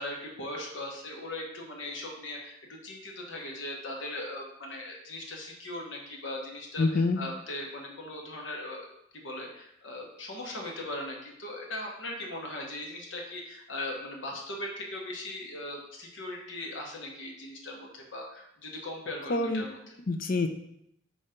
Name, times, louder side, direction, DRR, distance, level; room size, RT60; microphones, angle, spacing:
voice 1, 0.0-8.9 9.1-20.0, left 1 dB, 75° left, 0 dB, 1.2 m, -39 dB
voice 2, 6.8-7.2 19.3-19.6 20.1-20.5, left 3 dB, 50° left, 6 dB, 0.5 m, -26 dB
4.4 x 4.2 x 5.1 m, 0.77 s
head